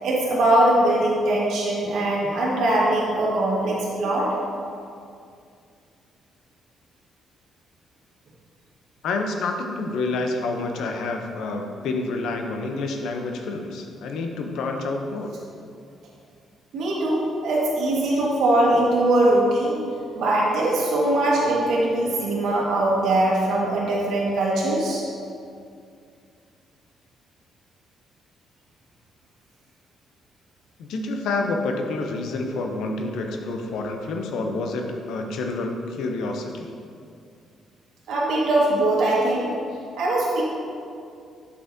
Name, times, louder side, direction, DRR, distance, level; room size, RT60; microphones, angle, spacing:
voice 1, 0.0-4.3 16.7-19.8 20.1-25.0 38.1-39.5 40.0-40.4, right 1 dB, 75° right, -5 dB, 1.5 m, -21 dB
voice 2, 9.0-15.3 30.8-36.7, left 3 dB, 80° left, 3 dB, 0.6 m, -28 dB
7.8 x 5.8 x 2.7 m, 2.4 s
cardioid pair, 90°, 0 cm